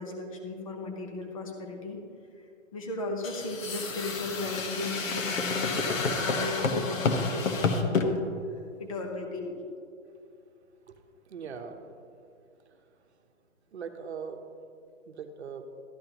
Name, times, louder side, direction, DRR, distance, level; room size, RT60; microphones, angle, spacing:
voice 1, 0.0-2.0 2.4-2.5 2.7-8.3 8.8-9.7, left 2 dB, 25° left, 2 dB, 0.8 m, -36 dB
sound 1, 3.2-8.1, left 4 dB, 85° left, 1.3 m, -29 dB
voice 2, 10.9-11.9 12.6-12.8 13.7-14.4 15.1-15.7, right 6 dB, 60° right, 6 dB, 1.0 m, -41 dB
13.0 x 10.5 x 2.9 m, 2.6 s
hypercardioid pair, 175°, 38 cm